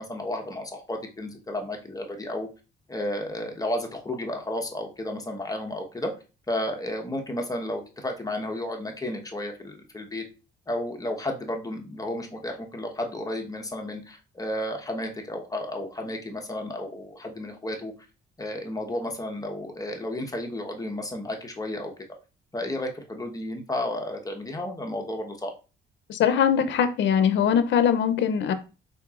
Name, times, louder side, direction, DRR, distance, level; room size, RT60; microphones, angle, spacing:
voice 1, 0.0-2.5 2.9-6.1 6.5-10.2 10.7-17.9 18.4-21.9 22.5-25.5, left 1 dB, 20° left, 1.1 m, -32 dB
voice 2, 26.1-28.5, left 8 dB, 70° left, 0.6 m, -21 dB
4.4 x 4.1 x 2.4 m
cardioid pair, 90°, 20 cm